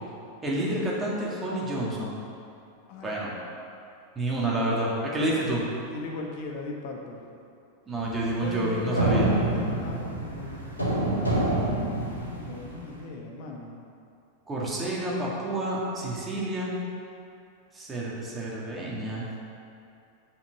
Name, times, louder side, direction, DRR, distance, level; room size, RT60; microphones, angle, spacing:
voice 1, 0.4-2.2 3.0-3.3 4.2-5.6 7.9-9.3 14.5-16.7 17.7-19.3, right 1 dB, 15° right, -5 dB, 2.2 m, -29 dB
voice 2, 5.9-7.3 8.4-13.7, left 3 dB, 45° left, 0 dB, 1.3 m, -38 dB
sound 1, 8.0-12.8, right 2 dB, 90° right, 1.8 m, -27 dB
7.4 x 5.8 x 6.6 m, 2.6 s
figure-of-eight pair, 90°, 0 cm